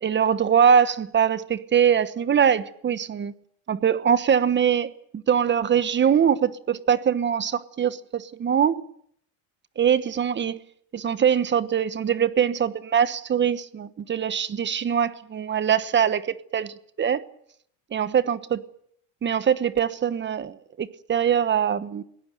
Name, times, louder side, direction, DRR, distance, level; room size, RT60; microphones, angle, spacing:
voice 1, 0.0-3.3 3.7-4.9 5.3-8.8 9.8-10.6 10.9-16.3 16.5-17.2 17.9-18.6 19.2-22.0, right 8 dB, 30° right, 1.1 m, -22 dB
22.0 x 18.0 x 9.2 m
cardioid pair, 130°, 38 cm